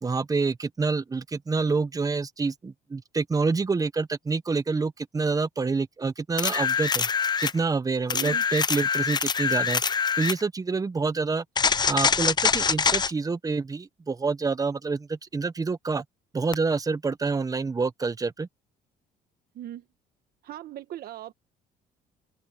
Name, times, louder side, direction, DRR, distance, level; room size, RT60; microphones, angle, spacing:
voice 1, 0.0-7.1 7.4-9.8 10.2-11.4 11.9-16.0 16.3-18.5, right 4 dB, 20° right, 1.0 m, -27 dB
sound 1, 6.4-7.6 8.1-10.4 11.6-13.1 16.5-16.6, left 6 dB, 25° left, 0.6 m, -24 dB
voice 2, 8.1-8.4 19.5-19.8 20.4-21.3, right 13 dB, 65° right, 1.3 m, -38 dB
open air
cardioid pair, 110°, 17 cm